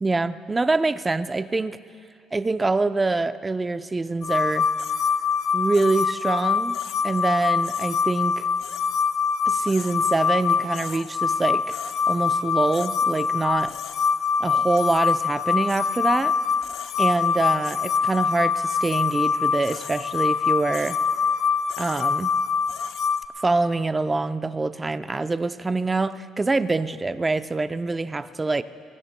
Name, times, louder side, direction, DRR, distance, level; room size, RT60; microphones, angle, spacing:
voice 1, 0.0-1.8 2.3-4.7 5.5-6.8 7.0-8.5 9.5-11.8 12.1-13.7 14.4-16.4 17.0-21.0 21.8-22.3 23.4-28.6, right 3 dB, 20° right, 12 dB, 0.5 m, -25 dB
sound 1, 4.2-23.2, left 6 dB, 70° left, 0.6 m, -24 dB
26.5 x 20.5 x 2.2 m, 2.5 s
cardioid pair, 100°, 0 cm